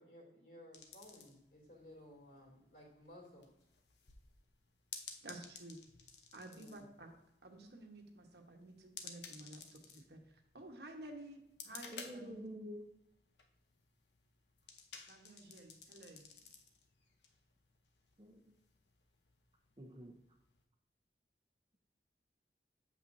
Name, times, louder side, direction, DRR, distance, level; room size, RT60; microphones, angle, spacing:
voice 1, 0.0-3.5 6.5-6.9, left 1 dB, 55° left, -2 dB, 2.8 m, -57 dB
sound 1, 0.7-20.6, left 6 dB, 80° left, 0.9 m, -56 dB
voice 2, 5.2-5.8 6.3-7.1 7.4-12.5 15.1-16.3, right 1 dB, 70° right, 3 dB, 1.2 m, -53 dB
voice 3, 11.9-12.8 18.2-18.6 19.8-20.2, equal, 30° right, 3 dB, 0.8 m, -48 dB
8.4 x 7.3 x 2.7 m, 0.83 s
head